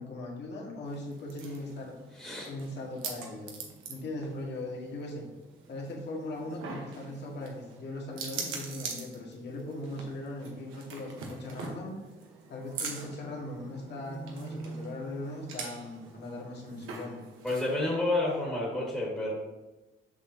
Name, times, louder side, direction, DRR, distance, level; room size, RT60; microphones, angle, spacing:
voice 1, 0.0-2.0 2.5-5.2 5.7-11.9 12.5-17.2, left 2 dB, 60° left, -2 dB, 1.9 m, -39 dB
sound 1, 0.8-17.8, right 4 dB, 90° right, 1.1 m, -43 dB
voice 2, 2.1-2.5 17.4-19.3, left 2 dB, 5° left, -4 dB, 1.8 m, -30 dB
7.0 x 6.0 x 2.8 m, 1.1 s
cardioid pair, 90°, 20 cm